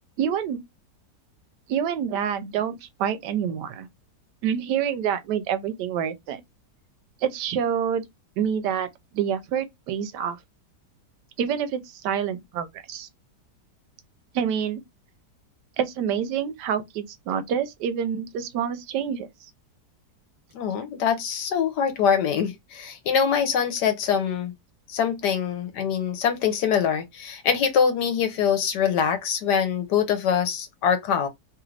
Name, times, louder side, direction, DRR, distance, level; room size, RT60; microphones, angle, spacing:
voice 1, 0.2-0.6 1.7-3.9 4.4-6.4 7.2-8.0 8.4-8.9 9.1-10.4 11.4-13.1 14.3-14.8 15.8-19.3, right 8 dB, 85° right, 1.2 m, -27 dB
voice 2, 20.5-24.5 24.9-31.3, left 7 dB, 80° left, 1.3 m, -24 dB
3.1 x 2.5 x 3.1 m
omnidirectional pair, 1.8 m